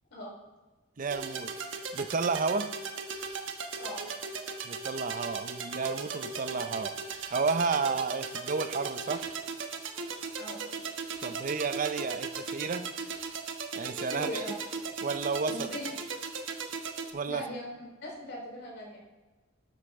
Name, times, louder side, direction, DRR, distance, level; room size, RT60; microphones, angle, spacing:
voice 1, 1.0-2.7 4.6-9.3 11.2-12.9 13.8-14.4 15.0-15.7 17.1-17.5, right 4 dB, 40° right, 11 dB, 0.5 m, -32 dB
sound 1, 1.1-17.1, right 5 dB, 65° right, 1.2 m, -37 dB
voice 2, 13.8-14.5 15.5-15.9 17.3-19.0, left 1 dB, 60° left, -2 dB, 3.9 m, -40 dB
13.0 x 9.9 x 3.6 m, 1.3 s
head